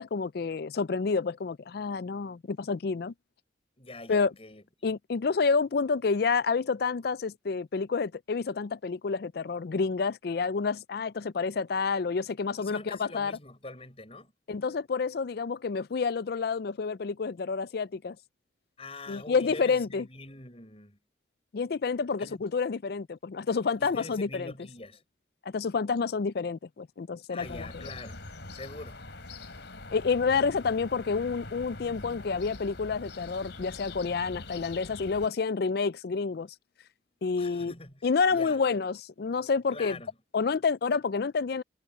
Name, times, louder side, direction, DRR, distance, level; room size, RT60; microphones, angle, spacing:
voice 1, 0.0-3.1 4.1-4.3 4.8-13.3 14.5-18.2 19.1-20.1 21.5-24.5 25.5-27.9 29.9-36.5 37.2-37.7 38.0-40.0 40.3-41.6, left 5 dB, 55° left, 0.4 m, -29 dB
voice 2, 3.8-4.9 12.6-14.3 18.8-21.0 22.2-22.5 23.8-25.0 27.3-28.2 28.5-29.0 37.4-38.6 39.7-40.1, left 2 dB, 30° left, 7.0 m, -44 dB
sound 1, 27.4-35.3, left 2 dB, 70° left, 3.6 m, -44 dB
head